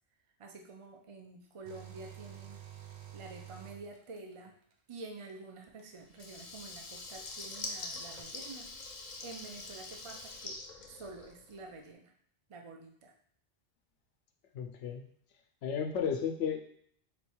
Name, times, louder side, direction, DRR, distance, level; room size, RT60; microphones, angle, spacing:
voice 1, 0.4-2.6 3.1-4.5 4.9-8.7 9.2-10.6 10.9-12.1 12.5-13.1, right 3 dB, 40° right, 3 dB, 0.4 m, -48 dB
sound 1, 1.6-4.5 5.8-5.9 7.6-7.7 8.2-8.3, right 11 dB, 70° right, 0.9 m, -49 dB
Water tap faucet / Liquid, 6.1-11.6, left 3 dB, 50° left, 0.6 m, -44 dB
voice 2, 14.5-15.0 15.6-16.6, left 7 dB, 90° left, 4 dB, 0.9 m, -33 dB
4.3 x 2.3 x 4.3 m, 0.65 s
omnidirectional pair, 1.2 m